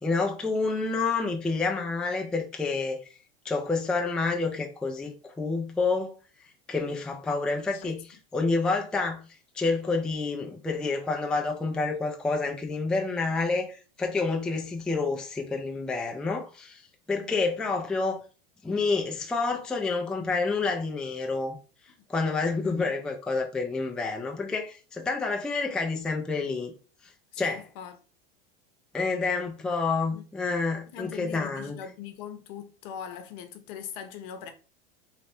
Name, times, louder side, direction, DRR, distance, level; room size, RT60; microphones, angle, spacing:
voice 1, 0.0-3.1 3.4-6.1 6.7-9.2 9.5-16.8 17.1-18.2 18.6-21.6 22.1-26.7 27.0-27.1 27.4-27.6 28.9-31.8, left 3 dB, 5° left, 0.3 m, -28 dB
voice 2, 22.6-23.0 27.3-28.0 30.1-30.2 30.9-34.5, left 8 dB, 60° left, 0.8 m, -41 dB
3.2 x 2.1 x 4.2 m
supercardioid pair, 115°, 31 cm